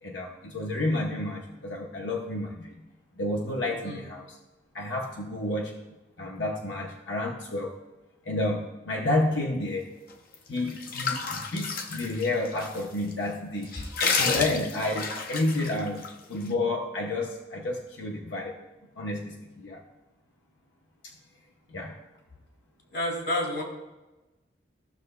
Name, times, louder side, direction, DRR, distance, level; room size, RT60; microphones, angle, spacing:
voice 1, 0.0-2.8 3.2-4.4 4.7-7.7 8.2-9.9 10.5-13.7 14.1-16.0 16.3-18.6 19.0-19.8 21.0-21.1 21.7-21.9, left 2 dB, 85° left, -1 dB, 0.8 m, -30 dB
sound 1, 10.3-12.8 13.1-13.2 13.6-16.1, left 4 dB, 50° left, 0.6 m, -30 dB
voice 2, 22.9-23.6, left 1 dB, 65° left, 0 dB, 2.2 m, -30 dB
14.5 x 6.6 x 2.2 m, 1.1 s
head